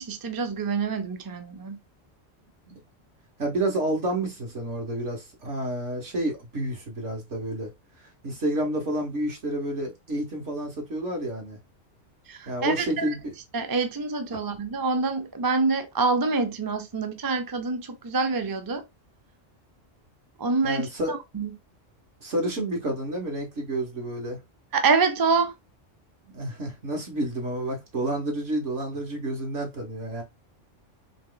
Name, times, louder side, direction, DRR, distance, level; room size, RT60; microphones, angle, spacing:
voice 1, 0.0-1.8 12.3-13.0 13.5-18.8 20.4-21.5 24.7-25.5, right 4 dB, 30° right, 0.4 m, -26 dB
voice 2, 3.4-7.7 8.2-11.6 12.5-13.3 14.3-14.4 20.6-21.1 22.2-24.4 26.3-30.2, right 1 dB, 65° right, 1.9 m, -30 dB
3.6 x 3.2 x 3.9 m
omnidirectional pair, 1.3 m